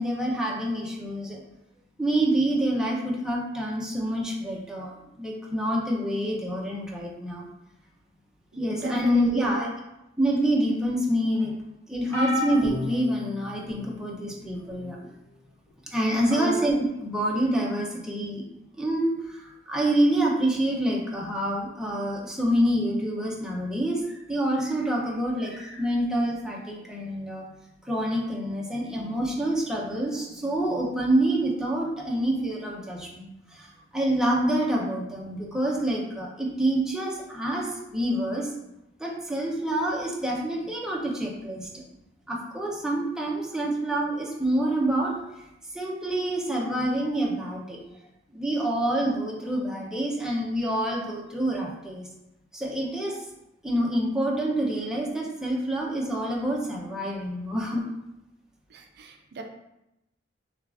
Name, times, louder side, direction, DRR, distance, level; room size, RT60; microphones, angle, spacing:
voice 1, 0.0-1.4 2.0-7.5 8.6-9.7 10.2-11.5 11.9-15.0 15.9-16.8 17.0-18.4 18.8-27.4 27.9-38.5 39.0-41.8 42.3-45.2 45.7-47.8 48.3-52.1 52.5-53.2 53.6-57.8, right 1 dB, 5° right, -3 dB, 0.7 m, -27 dB
voice 2, 8.8-9.7 16.3-16.6 58.7-59.4, right 2 dB, 60° right, 3 dB, 0.4 m, -34 dB
sound 1, 12.1-13.9 14.7-14.9 16.2-16.3, left 1 dB, 10° left, 1.3 m, -31 dB
6.4 x 2.4 x 2.5 m, 0.89 s
head